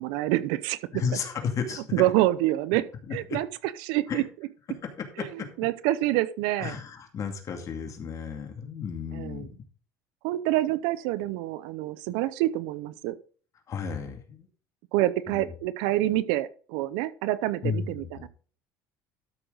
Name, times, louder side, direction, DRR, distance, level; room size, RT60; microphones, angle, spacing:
voice 1, 0.0-0.8 1.9-4.2 5.2-6.8 9.1-9.5 10.2-13.2 14.9-18.3, right 15 dB, 80° right, 0.7 m, -27 dB
voice 2, 0.9-1.8 3.3-3.4 4.1-4.2 5.0-5.5 6.6-9.5 13.7-14.5 15.3-15.4 17.6-18.3, left 6 dB, 45° left, 2.3 m, -33 dB
13.0 x 6.3 x 3.9 m
supercardioid pair, 105°, 8 cm